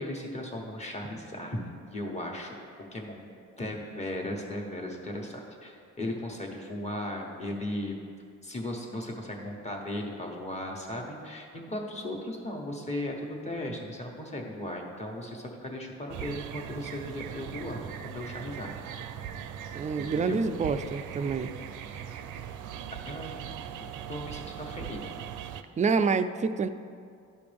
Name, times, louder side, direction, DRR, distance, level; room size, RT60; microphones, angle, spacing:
voice 1, 0.0-1.6 1.9-2.5 2.9-3.3 3.6-8.0 8.4-18.7 20.1-20.4 22.0-22.2 23.1-25.1, left 1 dB, 20° left, 0 dB, 1.3 m, -37 dB
sound 1, 16.1-25.6, right 9 dB, 80° right, 0.5 m, -40 dB
voice 2, 19.7-21.5 25.8-26.7, right 5 dB, 25° right, 10 dB, 0.3 m, -27 dB
12.0 x 5.1 x 3.5 m, 2.3 s
cardioid pair, 90°, 30 cm